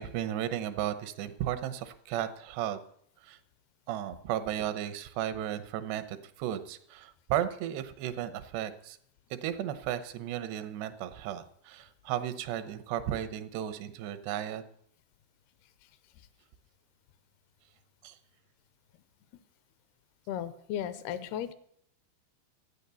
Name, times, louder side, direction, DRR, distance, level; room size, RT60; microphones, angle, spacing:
voice 1, 0.0-2.8 3.2-3.4 3.9-9.0 9.3-14.6 18.0-18.2, right 11 dB, 90° right, 12 dB, 3.1 m, -34 dB
voice 2, 20.3-21.5, left 10 dB, 80° left, 14 dB, 2.6 m, -35 dB
13.0 x 9.6 x 6.9 m, 0.67 s
omnidirectional pair, 4.7 m